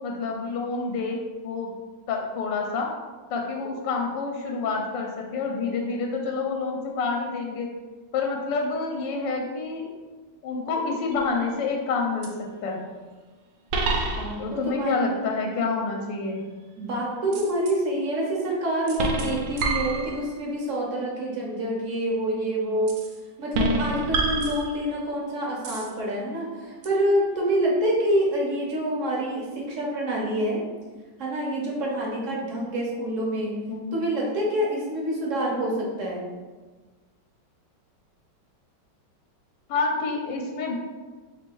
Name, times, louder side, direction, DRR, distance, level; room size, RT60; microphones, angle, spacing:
voice 1, 0.0-1.7 2.1-2.9 3.3-7.7 8.1-9.9 10.4-12.3 12.6-12.8 14.4-16.4 33.7-33.9 39.7-40.8, left 4 dB, 80° left, 1 dB, 1.2 m, -28 dB
sound 1, 11.1-11.6 12.2-12.3 13.7-14.6 17.3-17.8 18.9-20.5 22.9-23.2 23.5-25.1 25.6-25.9 26.8-26.9, right 2 dB, 90° right, 1.3 m, -28 dB
voice 2, 14.2-15.2 16.8-23.0 23.4-30.6 31.2-33.7 33.9-36.2, right 1 dB, 55° right, -3 dB, 0.9 m, -27 dB
3.3 x 2.6 x 4.5 m, 1.3 s
omnidirectional pair, 2.0 m